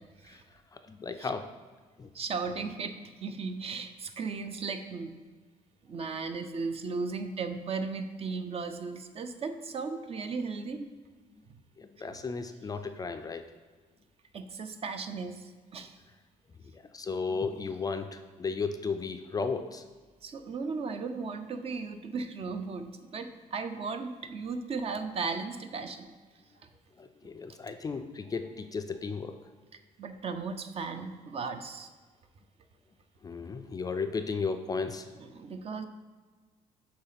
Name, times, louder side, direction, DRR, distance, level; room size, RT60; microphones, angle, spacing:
voice 1, 0.9-1.5 2.0-2.1 11.8-13.4 16.9-19.8 27.0-29.3 33.2-35.0, left 4 dB, 25° left, 8 dB, 0.4 m, -34 dB
voice 2, 2.1-2.9 3.2-5.1 5.8-10.9 11.5-11.6 12.1-12.2 14.3-15.9 20.2-26.1 30.0-31.9 35.2-35.8, right 4 dB, 45° right, 8 dB, 0.6 m, -36 dB
7.9 x 3.2 x 5.7 m, 1.4 s
cardioid pair, 105°, 15 cm